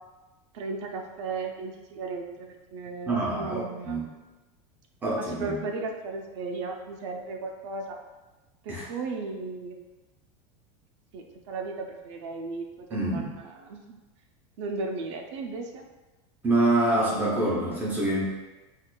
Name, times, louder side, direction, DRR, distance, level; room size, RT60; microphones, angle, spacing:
voice 1, 0.5-4.0 5.3-8.0 8.6-9.8 11.1-14.0 14.6-15.8, right 3 dB, 70° right, 3 dB, 0.5 m, -35 dB
voice 2, 3.1-4.1 5.0-5.6 8.7-8.8 12.9-13.3 16.4-18.3, right 2 dB, 10° right, -5 dB, 0.5 m, -26 dB
4.4 x 2.4 x 2.2 m, 1.1 s
supercardioid pair, 175°, 16 cm